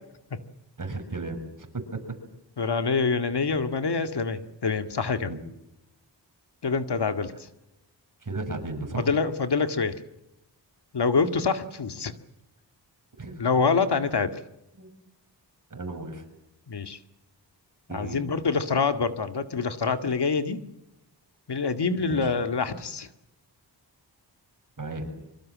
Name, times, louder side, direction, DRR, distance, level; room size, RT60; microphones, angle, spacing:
voice 1, 0.8-1.4 1.7-2.2 5.3-5.4 8.2-9.1 13.2-13.4 14.7-14.9 15.7-16.2 17.9-18.2 22.0-22.4 24.8-25.1, right 3 dB, 45° right, 5 dB, 6.6 m, -34 dB
voice 2, 2.6-5.3 6.6-7.3 9.0-9.9 10.9-12.1 13.4-14.3 16.7-17.0 17.9-20.6 21.5-23.1, left 5 dB, 65° left, 8 dB, 2.1 m, -26 dB
25.5 x 25.0 x 7.6 m, 0.90 s
wide cardioid pair, 80°, 43 cm